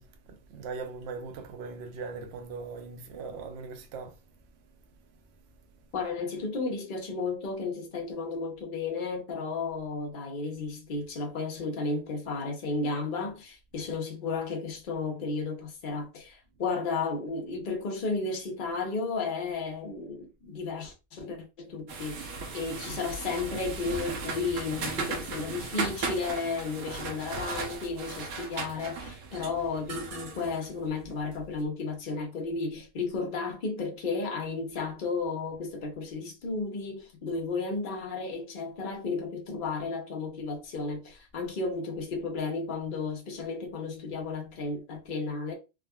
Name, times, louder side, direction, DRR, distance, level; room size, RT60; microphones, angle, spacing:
voice 1, 0.0-4.5 4.9-6.1, right 4 dB, 60° right, 0.7 m, -41 dB
voice 2, 5.9-45.5, left 4 dB, 45° left, 0.7 m, -33 dB
sound 1, 21.9-31.4, right 4 dB, 80° right, 1.2 m, -37 dB
3.5 x 2.1 x 2.3 m
omnidirectional pair, 1.5 m